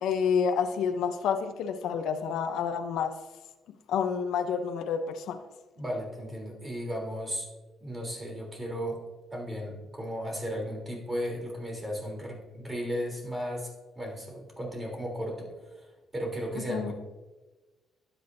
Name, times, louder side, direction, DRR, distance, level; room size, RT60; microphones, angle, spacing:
voice 1, 0.0-3.1 3.9-5.4 16.7-16.9, left 6 dB, 80° left, 7 dB, 0.7 m, -29 dB
voice 2, 5.7-7.5 7.8-9.0 9.3-13.7 13.9-16.9, equal, 20° right, 0 dB, 3.3 m, -35 dB
12.0 x 8.5 x 2.7 m, 1.2 s
cardioid pair, 90°, 0 cm